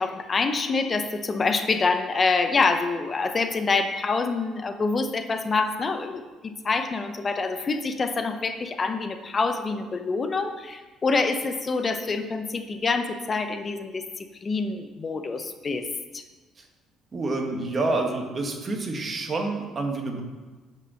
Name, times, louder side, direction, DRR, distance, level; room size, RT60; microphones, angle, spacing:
voice 1, 0.0-15.8 16.1-16.2, left 4 dB, 30° left, 8 dB, 0.7 m, -26 dB
voice 2, 17.1-20.2, right 2 dB, 30° right, 2 dB, 1.6 m, -28 dB
9.6 x 5.5 x 6.4 m, 1.3 s
cardioid pair, 130°, 0 cm